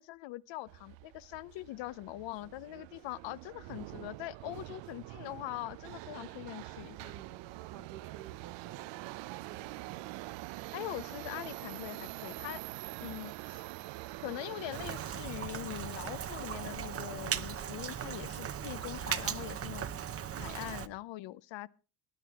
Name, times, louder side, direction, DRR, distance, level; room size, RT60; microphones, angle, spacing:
voice 1, 0.0-7.1 10.7-12.6 13.0-13.6 14.2-19.9 20.4-21.7, left 17 dB, 75° left, 0.7 m, -42 dB
Subway metro underground, 0.7-15.1, right 18 dB, 70° right, 0.6 m, -45 dB
voice 2, 6.9-9.9, right 9 dB, 50° right, 1.4 m, -53 dB
Rain, 14.7-20.9, right 9 dB, 30° right, 0.7 m, -38 dB
19.0 x 10.5 x 3.5 m
cardioid pair, 140°, 46 cm